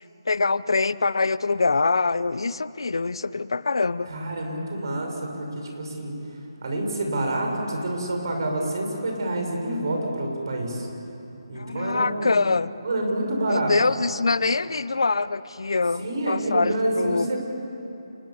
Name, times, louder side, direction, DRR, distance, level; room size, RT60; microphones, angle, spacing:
voice 1, 0.3-4.1 11.6-12.7 13.5-17.3, left 3 dB, 80° left, 17 dB, 0.7 m, -24 dB
voice 2, 4.1-6.1 6.6-10.9 11.5-12.4 12.8-13.7 16.0-17.4, right 1 dB, 55° right, 2 dB, 6.0 m, -27 dB
28.5 x 20.5 x 7.2 m, 2.9 s
hypercardioid pair, 165°, 3 cm